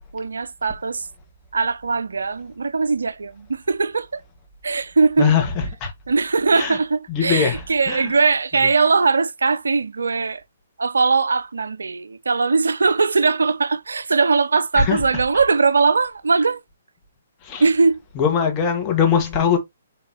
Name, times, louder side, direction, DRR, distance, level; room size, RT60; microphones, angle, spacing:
voice 1, 0.1-1.1 1.5-4.2 4.6-5.3 6.1-10.4 10.8-16.6 17.6-18.0, right 4 dB, 75° right, 0.4 m, -20 dB
voice 2, 5.2-5.9 6.5-6.8 7.1-8.1 14.7-15.0 17.4-17.6 18.1-19.6, left 7 dB, 25° left, 1.5 m, -21 dB
4.5 x 3.6 x 2.9 m
figure-of-eight pair, 130°, 0 cm